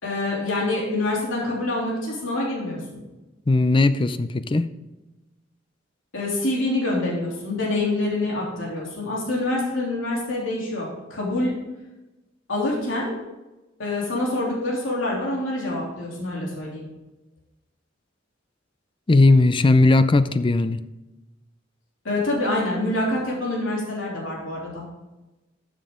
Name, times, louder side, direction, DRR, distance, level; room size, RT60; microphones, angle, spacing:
voice 1, 0.0-2.8 6.1-11.6 12.5-13.1 13.8-16.9 22.0-24.8, left 2 dB, 75° left, -4 dB, 3.2 m, -26 dB
voice 2, 3.5-4.7 19.1-20.8, left 2 dB, 25° left, 12 dB, 0.5 m, -18 dB
12.5 x 7.4 x 3.7 m, 1.0 s
head